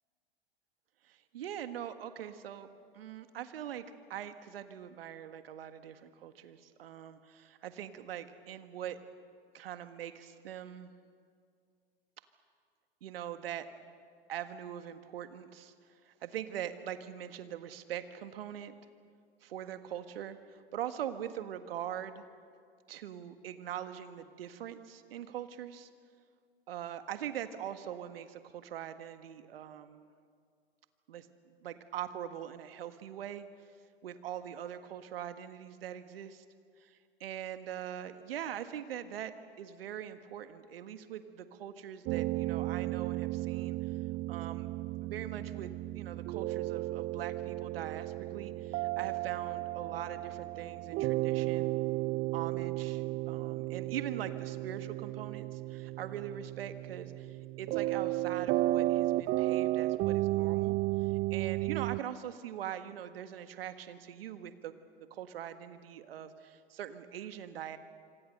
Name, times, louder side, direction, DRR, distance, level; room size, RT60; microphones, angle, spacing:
voice 1, 1.0-2.7 2.9-9.0 9.5-10.9 13.0-13.7 14.3-15.7 16.0-18.7 19.4-22.2 22.9-25.9 26.7-30.1 31.1-31.3 31.6-33.4 34.0-36.4 36.8-43.8 44.3-44.7 45.0-51.8 52.3-64.7 65.0-67.8, right 10 dB, 70° right, 10 dB, 1.7 m, -42 dB
sound 1, 42.1-62.0, right 18 dB, 35° right, 0.5 m, -33 dB
27.0 x 25.5 x 6.7 m, 2.2 s
hypercardioid pair, 95°, 31 cm